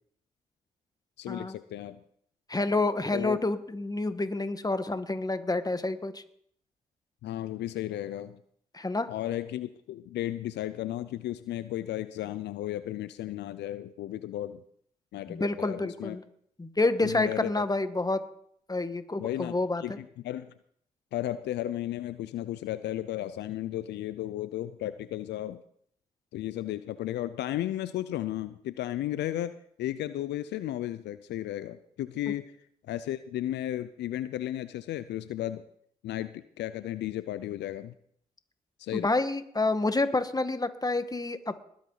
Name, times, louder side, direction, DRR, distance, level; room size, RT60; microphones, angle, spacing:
voice 1, 1.2-2.0 3.1-3.4 7.2-8.4 9.1-14.6 15.1-16.2 17.0-17.6 19.2-19.5 19.8-20.5 21.1-25.6 26.3-29.5 29.8-32.4 32.8-35.6 36.0-37.9 38.8-39.1, left 13 dB, 75° left, 14 dB, 0.5 m, -34 dB
voice 2, 2.5-6.2 8.7-9.1 15.3-16.2 16.6-18.2 18.7-20.0 32.3-32.4 38.9-41.6, left 2 dB, 20° left, 11 dB, 1.5 m, -28 dB
20.5 x 8.5 x 4.0 m, 0.66 s
hypercardioid pair, 40°, 18 cm